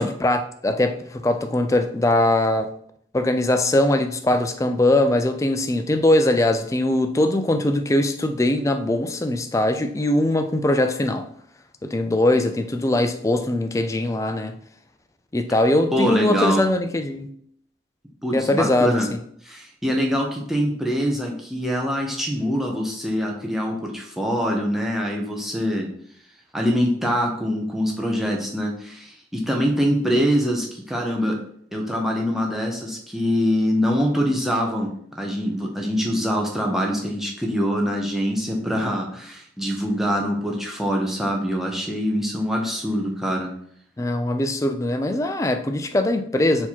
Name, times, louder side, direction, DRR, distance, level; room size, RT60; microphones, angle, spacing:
voice 1, 0.0-2.7 3.1-11.3 11.8-14.5 15.3-17.3 18.3-19.0 44.0-46.7, left 1 dB, 15° left, 0.3 m, -21 dB
voice 2, 15.9-16.6 18.2-19.1 19.4-25.9 26.5-31.4 31.7-34.9 35.2-43.5, equal, ahead, 0.7 m, -24 dB
4.3 x 2.8 x 4.4 m
head